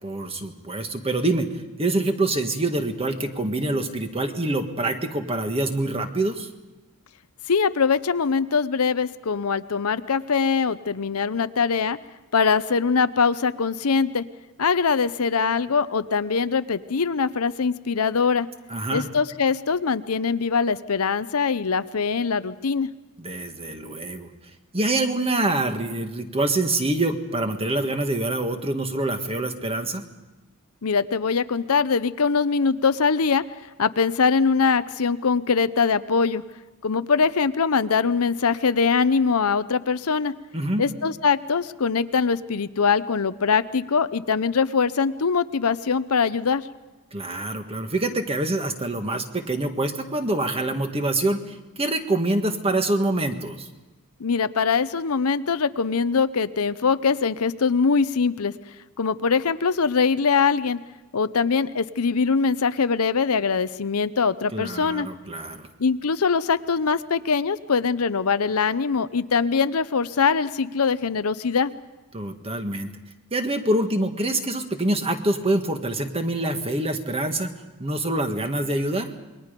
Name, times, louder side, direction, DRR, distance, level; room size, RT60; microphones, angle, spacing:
voice 1, 0.0-6.5 18.7-19.1 23.2-24.3 24.7-30.0 40.5-40.8 47.1-53.7 64.5-65.7 72.1-72.9 73.3-77.5 77.8-79.1, right 2 dB, 25° right, 6 dB, 1.7 m, -25 dB
voice 2, 7.5-12.0 12.3-14.2 14.6-18.5 18.9-22.9 30.8-33.4 33.8-36.4 36.8-40.3 40.8-46.7 54.2-58.5 59.0-60.8 61.1-65.1 65.8-71.7, left 5 dB, 80° left, 13 dB, 0.7 m, -22 dB
28.0 x 21.5 x 5.2 m, 1.1 s
head